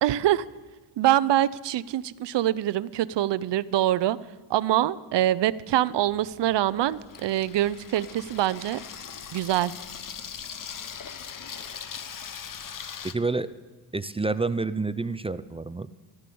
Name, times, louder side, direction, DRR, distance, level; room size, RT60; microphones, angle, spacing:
voice 1, 0.0-0.4 1.0-4.2 4.5-8.8 9.3-9.7, right 13 dB, 60° right, 18 dB, 0.7 m, -24 dB
Water tap faucet / Sink (filling or washing), 6.0-13.1, left 7 dB, 40° left, 1.1 m, -40 dB
voice 2, 13.0-13.5 13.9-15.9, right 3 dB, 10° right, 14 dB, 0.5 m, -28 dB
14.5 x 12.5 x 7.0 m, 1.2 s
cardioid pair, 85°, 49 cm